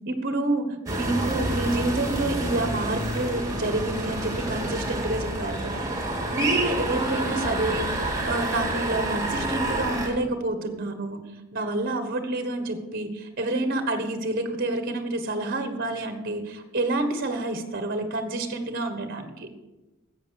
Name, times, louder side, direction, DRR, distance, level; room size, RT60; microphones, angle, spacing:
voice 1, 0.1-5.9 6.3-11.2 11.5-19.5, right 2 dB, 45° right, 7 dB, 1.4 m, -28 dB
sound 1, 0.9-10.1, right 1 dB, 15° right, 2.3 m, -28 dB
13.5 x 8.5 x 6.5 m, 1.1 s
head